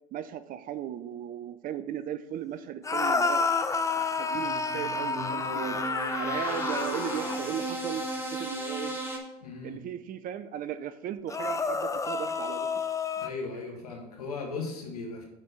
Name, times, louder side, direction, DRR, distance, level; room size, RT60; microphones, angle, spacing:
voice 1, 0.1-3.5 4.0-5.8 6.2-9.0 9.6-12.7, right 10 dB, 50° right, 13 dB, 0.6 m, -37 dB
sound 1, 2.8-7.6 11.3-13.3, left 4 dB, 15° left, 0.6 m, -30 dB
sound 2, 4.3-9.2, right 2 dB, 10° right, 1.7 m, -35 dB
voice 2, 9.4-9.8 13.2-15.3, left 4 dB, 85° left, 1 dB, 1.5 m, -37 dB
6.0 x 4.4 x 6.2 m, 0.93 s
hypercardioid pair, 70°, 19 cm